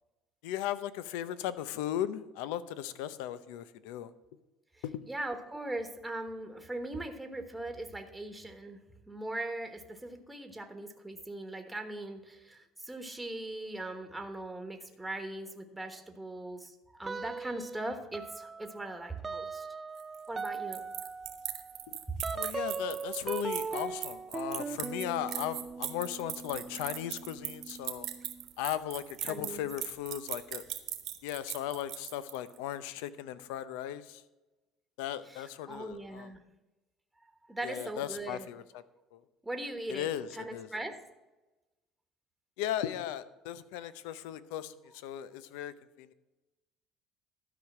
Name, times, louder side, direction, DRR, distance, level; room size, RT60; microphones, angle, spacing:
voice 1, 0.4-4.1 4.8-5.0 22.3-28.1 28.6-30.6 31.2-34.2 35.0-36.3 37.6-38.6 39.1-39.2 39.9-40.7 42.6-46.1, left 11 dB, 90° left, 15 dB, 0.6 m, -37 dB
voice 2, 4.7-19.7 20.3-20.8 29.2-29.7 35.3-36.4 37.5-38.5 39.4-41.0, right 2 dB, 5° right, 6 dB, 1.2 m, -40 dB
sound 1, 17.0-17.8 18.1-28.5, right 4 dB, 20° right, 0.4 m, -40 dB
sound 2, 20.0-32.6, right 13 dB, 65° right, 1.3 m, -39 dB
12.5 x 5.1 x 7.2 m, 1.1 s
cardioid pair, 115°, 0 cm